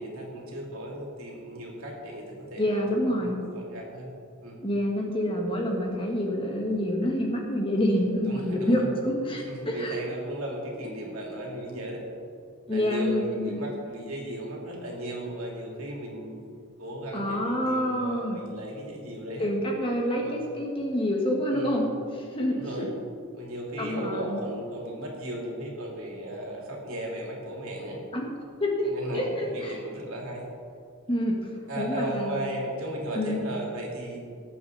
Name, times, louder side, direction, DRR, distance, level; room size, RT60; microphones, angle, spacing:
voice 1, 0.0-4.1 4.4-4.6 8.2-8.8 9.5-12.0 12.7-16.4 16.8-19.5 20.2-20.4 21.5-21.8 22.5-22.9 23.3-28.0 28.8-30.5 31.7-34.2, right 1 dB, 65° right, -2 dB, 3.0 m, -36 dB
voice 2, 2.6-3.4 4.6-10.0 12.7-13.6 17.1-18.4 19.4-21.8 22.1-22.9 23.8-24.4 28.1-28.3 28.6-28.9 29.1-29.8 31.1-31.4 31.8-32.4 33.1-33.4, equal, 25° left, 0 dB, 1.7 m, -27 dB
19.0 x 8.4 x 4.1 m, 2.3 s
head